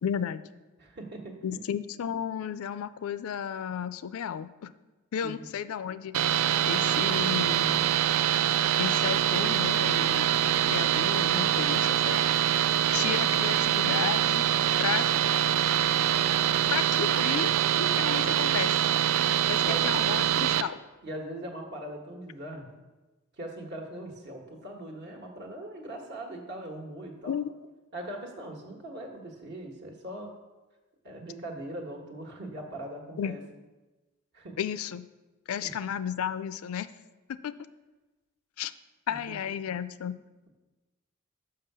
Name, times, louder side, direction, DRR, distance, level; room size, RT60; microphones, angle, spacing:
voice 1, 0.0-0.4 1.4-4.7 5.1-6.4 6.7-7.9 8.8-12.2 12.9-14.5 14.8-15.1 16.7-18.8 19.5-20.8 27.3-27.5 33.2-33.3 34.6-35.1 35.5-36.9 37.3-37.5 38.6-38.7 39.1-40.2, left 8 dB, 85° left, 14 dB, 0.4 m, -33 dB
voice 2, 0.8-1.6 5.2-5.5 19.6-19.9 21.0-22.7 23.4-27.3 27.9-30.3 31.0-33.4 34.3-34.5 35.6-35.7 39.1-39.4 39.9-40.0, right 1 dB, 55° right, 1 dB, 1.3 m, -40 dB
sound 1, 6.1-20.6, right 10 dB, 80° right, 0.4 m, -24 dB
5.6 x 5.5 x 6.7 m, 1.2 s
head